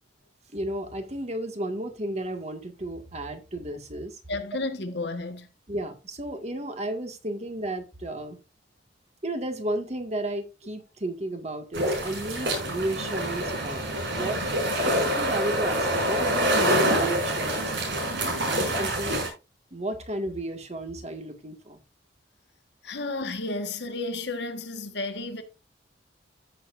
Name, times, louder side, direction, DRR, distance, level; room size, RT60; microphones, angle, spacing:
voice 1, 0.5-4.2 5.7-8.4 9.2-14.4 14.8-19.1 19.7-21.8, right 1 dB, 35° right, 1.9 m, -33 dB
voice 2, 4.3-5.5 22.8-25.4, left 2 dB, 65° left, 1.5 m, -32 dB
sound 1, 11.7-19.3, right 1 dB, 70° right, 5.5 m, -26 dB
14.5 x 6.9 x 2.6 m
head